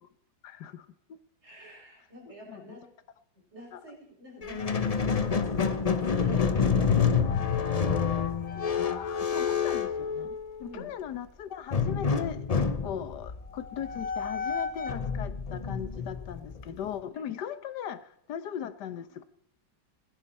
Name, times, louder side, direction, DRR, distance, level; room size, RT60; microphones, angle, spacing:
voice 1, 0.4-0.9 2.5-2.8 3.7-3.8 8.5-12.5 12.8-19.2, left 9 dB, 75° left, 1.5 m, -39 dB
voice 2, 1.4-2.9 3.3-7.0 10.6-10.9, equal, 40° right, 6.6 m, -46 dB
Squeak, 4.4-10.8 11.7-16.9, left 6 dB, 45° left, 0.4 m, -28 dB
20.5 x 10.5 x 4.3 m
omnidirectional pair, 1.9 m